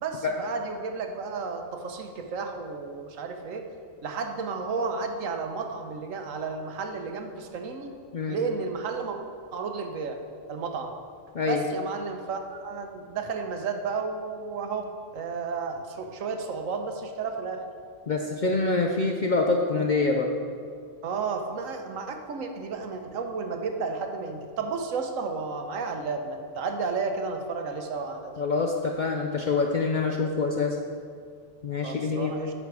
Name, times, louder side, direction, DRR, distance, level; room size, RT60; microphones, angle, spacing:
voice 1, 0.0-3.6 4.0-7.9 8.3-9.2 9.5-10.2 10.5-10.9 11.5-17.6 21.0-28.3 31.8-32.5, right 4 dB, 80° right, 5 dB, 1.2 m, -32 dB
voice 2, 18.1-20.3 28.4-30.8 31.6-32.3, left 3 dB, 55° left, 2 dB, 0.5 m, -25 dB
8.9 x 6.1 x 4.7 m, 2.2 s
omnidirectional pair, 1.4 m